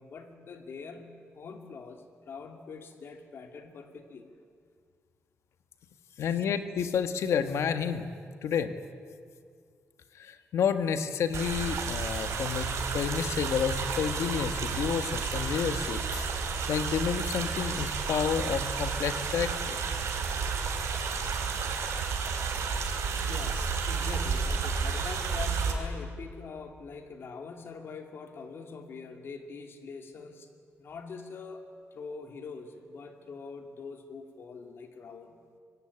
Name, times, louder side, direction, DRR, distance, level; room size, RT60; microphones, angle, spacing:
voice 1, 0.0-4.3 6.2-6.4 23.1-30.5 30.8-31.7 31.9-35.4, left 4 dB, 55° left, 5 dB, 2.6 m, -44 dB
voice 2, 6.2-8.1 8.4-8.7 10.2-16.3 16.7-19.8, left 7 dB, 85° left, 9 dB, 1.6 m, -30 dB
sound 1, 11.3-25.7, right 5 dB, 85° right, 4.0 m, -31 dB
25.0 x 23.0 x 9.9 m, 2.1 s
wide cardioid pair, 170°, 5 cm